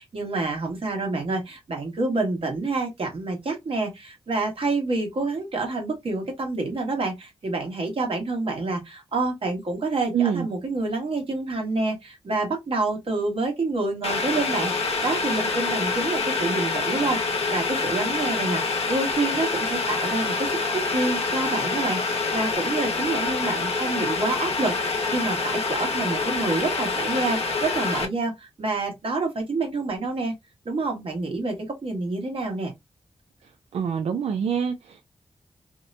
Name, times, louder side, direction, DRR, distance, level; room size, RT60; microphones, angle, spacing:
voice 1, 0.0-14.7 15.0-30.3 30.6-32.7, right 3 dB, 65° right, 1.3 m, -28 dB
voice 2, 10.1-10.5 33.7-35.1, right 7 dB, 85° right, 0.4 m, -25 dB
Boiling, 14.0-28.1, left 4 dB, 80° left, 0.7 m, -26 dB
2.9 x 2.1 x 2.5 m
cardioid pair, 70°, 10 cm